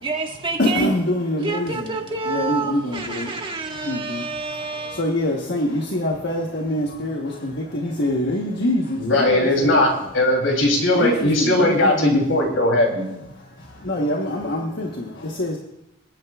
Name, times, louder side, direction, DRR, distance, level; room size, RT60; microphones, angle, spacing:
voice 1, 0.0-1.0 1.4-5.1, right 4 dB, 25° right, 1 dB, 1.6 m, -28 dB
voice 2, 0.6-1.9 2.3-3.3 3.8-4.3 4.8-9.3 11.0-12.2 13.8-15.6, left 1 dB, 60° left, 0 dB, 1.2 m, -24 dB
voice 3, 8.9-9.9 10.1-13.0, left 1 dB, 85° left, 1 dB, 3.2 m, -18 dB
27.0 x 9.4 x 2.4 m, 0.90 s
head